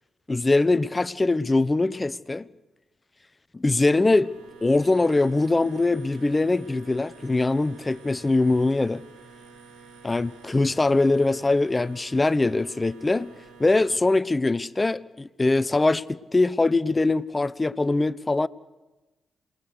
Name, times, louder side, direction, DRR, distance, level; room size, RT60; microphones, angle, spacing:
voice 1, 0.3-2.5 3.5-4.3 4.6-9.0 10.0-13.3 13.6-18.5, left 2 dB, 25° left, 0.7 m, -22 dB
sound 1, 4.2-14.0, right 4 dB, 85° right, 3.5 m, -49 dB
28.0 x 19.5 x 6.5 m
supercardioid pair, 50°, 0 cm